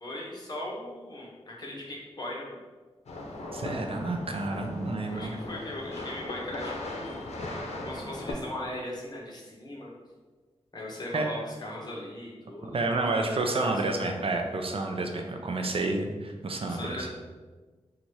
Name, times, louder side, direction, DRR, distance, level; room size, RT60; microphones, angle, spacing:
voice 1, 0.0-2.6 5.1-7.3 7.8-9.9 10.7-13.9 16.6-17.1, left 1 dB, 40° left, -4 dB, 1.2 m, -39 dB
sound 1, 3.1-8.3, left 2 dB, 80° left, 0.6 m, -38 dB
voice 2, 3.5-5.4 11.1-11.3 12.6-17.1, right 2 dB, 60° right, 3 dB, 0.5 m, -30 dB
4.1 x 2.5 x 4.6 m, 1.3 s
wide cardioid pair, 75°, 11 cm